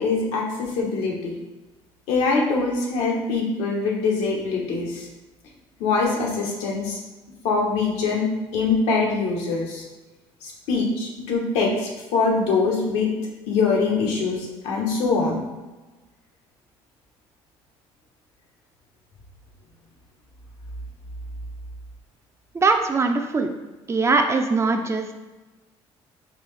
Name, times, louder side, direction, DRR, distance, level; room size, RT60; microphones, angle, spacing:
voice 1, 0.0-1.4 2.1-5.1 5.8-7.0 7.4-8.3 8.5-9.8 10.4-13.1 13.5-15.4, left 4 dB, 90° left, -1 dB, 0.9 m, -23 dB
voice 2, 22.5-23.5 23.9-25.1, right 3 dB, 25° right, 6 dB, 0.4 m, -21 dB
4.1 x 2.7 x 3.1 m, 1.1 s
cardioid pair, 100°, 11 cm